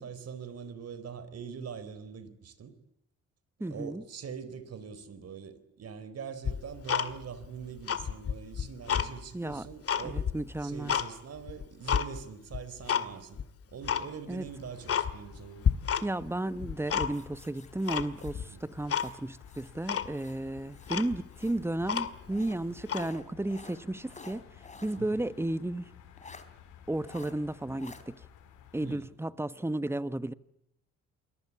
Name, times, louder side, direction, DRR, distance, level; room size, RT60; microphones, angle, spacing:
voice 1, 0.0-2.8 3.7-10.3 10.6-13.4 13.7-15.7 18.4-18.6 25.0-25.1 28.8-29.1, right 7 dB, 55° right, 4.3 m, -43 dB
voice 2, 3.6-4.0 9.3-9.7 10.0-11.0 14.3-14.5 16.0-24.4 24.8-25.9 26.9-28.2 28.7-30.3, right 1 dB, 10° right, 1.2 m, -33 dB
Tick-tock, 6.4-7.5 7.8-9.1 9.5-11.1 11.5-12.1 12.5-13.1 13.3-13.4 13.8-14.1 14.5-14.6 14.9-15.4 15.6-16.3 16.6-17.4 17.9-18.4 18.9-19.1 19.4-19.5 19.9-20.1 20.6-20.7 20.9-22.4 22.8-23.1, left 8 dB, 50° left, 2.0 m, -30 dB
sound 1, 14.4-29.0, left 9 dB, 90° left, 4.7 m, -55 dB
sound 2, 17.1-19.8 20.1-21.7 22.3-25.0 25.4-25.5 26.2-26.5 27.0-27.3 27.8-28.0, left 3 dB, 25° left, 3.7 m, -52 dB
28.0 x 21.5 x 8.6 m
cardioid pair, 90°, 30 cm